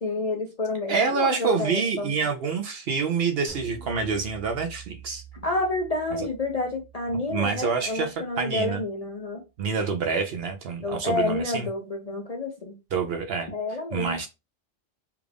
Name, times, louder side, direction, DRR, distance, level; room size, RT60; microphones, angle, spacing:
voice 1, 0.0-2.1 5.4-9.4 10.8-12.8 13.5-14.2, left 2 dB, 45° left, 0.5 m, -29 dB
voice 2, 0.9-5.2 7.3-8.1 8.4-8.8 9.6-11.7 12.9-13.5 13.9-14.3, right 5 dB, 60° right, 0.7 m, -27 dB
sound 1, 3.5-8.9, right 7 dB, 90° right, 1.3 m, -47 dB
3.4 x 2.4 x 3.3 m
omnidirectional pair, 1.3 m